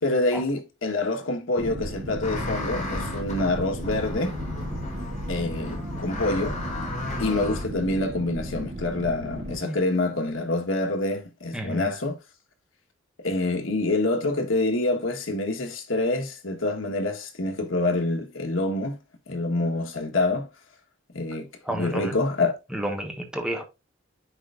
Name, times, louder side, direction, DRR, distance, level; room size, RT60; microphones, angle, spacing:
voice 1, 0.0-4.4 5.3-6.6 7.2-12.2 13.2-19.0 19.3-20.5 21.1-22.5, left 2 dB, 90° left, 1.4 m, -26 dB
sound 1, 1.6-9.6, equal, 65° right, 2.5 m, -35 dB
sound 2, 2.2-7.6, left 2 dB, 35° left, 2.5 m, -34 dB
voice 2, 11.5-11.9 21.7-22.2 22.7-23.6, right 1 dB, 5° right, 1.3 m, -31 dB
9.7 x 4.4 x 2.5 m
head